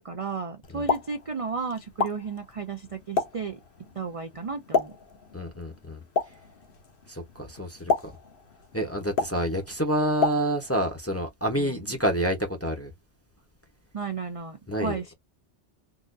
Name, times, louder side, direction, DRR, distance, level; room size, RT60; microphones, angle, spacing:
voice 1, 0.0-3.6 4.0-4.9 11.6-11.8 13.9-15.1, right 5 dB, 45° right, 0.5 m, -33 dB
Explosion, 0.6-10.9, left 4 dB, 55° left, 1.0 m, -32 dB
voice 2, 5.3-6.0 7.1-8.1 8.7-12.9 14.7-15.0, equal, 15° left, 0.6 m, -28 dB
4.0 x 2.4 x 2.5 m
omnidirectional pair, 1.2 m